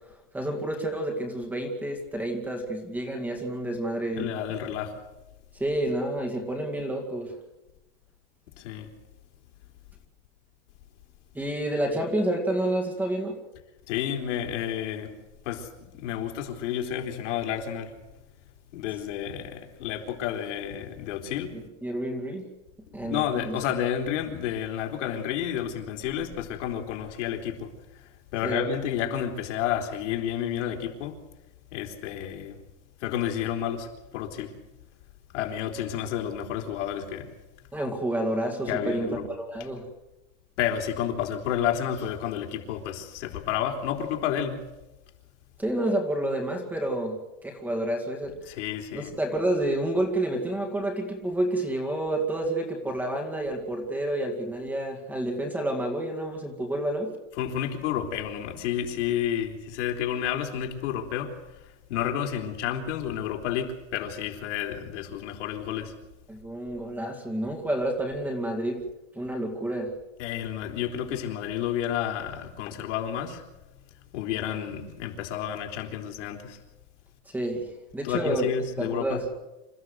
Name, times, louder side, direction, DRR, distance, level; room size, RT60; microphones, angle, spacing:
voice 1, 0.3-4.3 5.5-7.3 11.3-13.4 21.5-22.4 22.9-23.6 28.4-28.6 37.7-39.9 45.6-47.2 47.4-48.3 48.9-57.1 66.3-68.8 69.1-69.9 77.3-78.5 78.8-79.2, right 1 dB, 5° right, 3 dB, 2.1 m, -29 dB
voice 2, 4.1-5.0 8.6-8.9 13.9-15.1 15.5-17.9 18.7-21.6 23.0-31.2 31.7-32.6 33.0-34.6 35.3-37.3 38.7-39.2 40.6-44.6 48.5-49.1 57.4-65.9 70.2-73.4 74.1-76.6 78.0-79.2, left 9 dB, 70° left, 3 dB, 3.8 m, -31 dB
27.0 x 15.0 x 8.0 m, 1.0 s
supercardioid pair, 180°, 36 cm